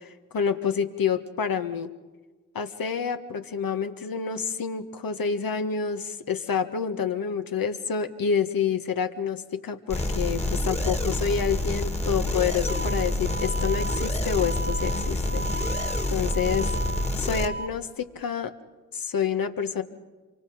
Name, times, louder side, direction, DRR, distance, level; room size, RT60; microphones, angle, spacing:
voice 1, 0.0-1.9 2.5-16.7 17.2-18.5 18.9-19.8, left 7 dB, 50° left, 8 dB, 1.6 m, -28 dB
sound 1, 9.9-17.5, left 1 dB, 15° left, 2.2 m, -27 dB
sound 2, 12.7-17.7, right 2 dB, 20° right, 1.3 m, -36 dB
27.0 x 24.5 x 5.1 m, 1.3 s
hypercardioid pair, 50°, 45 cm